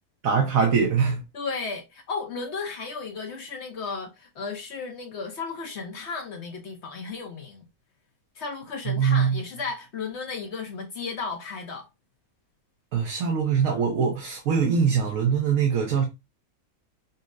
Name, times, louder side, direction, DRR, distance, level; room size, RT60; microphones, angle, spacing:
voice 1, 0.2-1.2 8.9-9.4 12.9-16.0, right 6 dB, 65° right, 1.1 m, -23 dB
voice 2, 1.3-7.7 8.4-11.9, left 4 dB, 60° left, 0.8 m, -34 dB
5.2 x 2.0 x 2.4 m
omnidirectional pair, 1.6 m